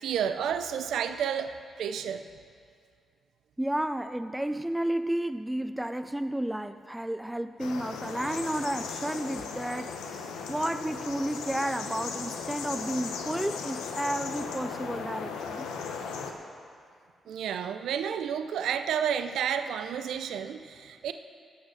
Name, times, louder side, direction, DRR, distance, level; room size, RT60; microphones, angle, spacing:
voice 1, 0.0-1.5 1.8-2.2 17.3-21.1, right 8 dB, 80° right, 9 dB, 0.5 m, -31 dB
voice 2, 3.6-15.7, right 1 dB, 10° right, 10 dB, 0.4 m, -32 dB
sound 1, 7.6-16.3, left 5 dB, 90° left, 0.9 m, -37 dB
16.5 x 6.4 x 6.4 m, 2.2 s
supercardioid pair, 55°, 0 cm